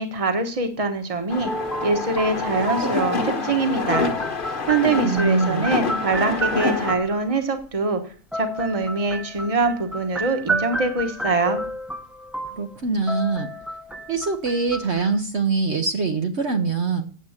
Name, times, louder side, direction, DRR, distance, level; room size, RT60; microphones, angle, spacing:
voice 1, 0.0-1.5 1.8-4.1 4.7-8.0 8.3-11.6, right 3 dB, 25° right, 7 dB, 1.3 m, -23 dB
sound 1, 1.3-7.0, left 3 dB, 40° left, 1.4 m, -27 dB
sound 2, 1.4-7.3 8.3-15.2, right 1 dB, ahead, 0.9 m, -31 dB
voice 2, 5.0-5.7 12.5-13.5 14.1-17.0, right 4 dB, 55° right, 5 dB, 1.2 m, -24 dB
8.8 x 7.9 x 7.2 m, 0.43 s
omnidirectional pair, 1.4 m